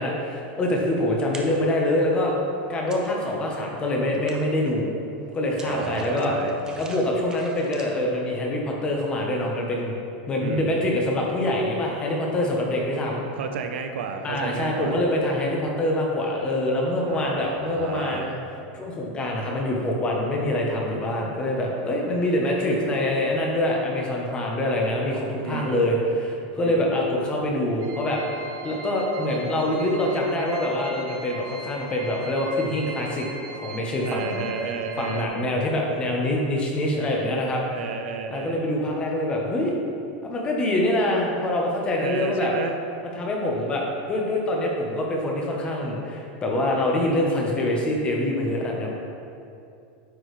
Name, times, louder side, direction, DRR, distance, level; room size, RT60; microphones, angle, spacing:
voice 1, 0.0-2.3 2.7-4.9 5.3-6.3 6.8-10.0 10.3-13.2 14.2-18.4 18.7-28.2 28.6-33.3 33.6-34.4 35.0-37.6 38.3-39.7 40.2-42.5 43.1-48.9, left 1 dB, 15° left, -1 dB, 1.0 m, -25 dB
sound 1, 1.3-1.8 2.2-3.5 3.8-8.1, right 3 dB, 10° right, 0.6 m, -45 dB
voice 2, 5.6-6.6 10.4-10.8 13.4-15.0 17.1-18.4 25.4-25.9 26.6-27.0 34.0-35.3 37.7-38.7 42.0-42.8, right 5 dB, 85° right, 6 dB, 0.8 m, -32 dB
sound 2, 27.8-35.3, right 3 dB, 50° right, 0.7 m, -40 dB
9.5 x 6.1 x 3.2 m, 2.6 s
supercardioid pair, 165°, 6 cm